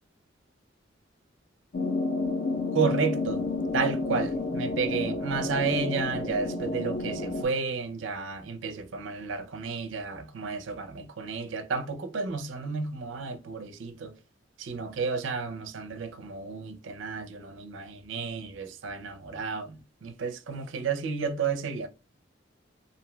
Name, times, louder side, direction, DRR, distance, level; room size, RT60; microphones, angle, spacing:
sound 1, 1.7-7.4, left 3 dB, 55° left, 0.5 m, -30 dB
voice 1, 2.7-3.4 3.7-14.1 14.6-19.7 20.0-21.9, right 5 dB, 75° right, 0.4 m, -32 dB
2.5 x 2.2 x 3.1 m
head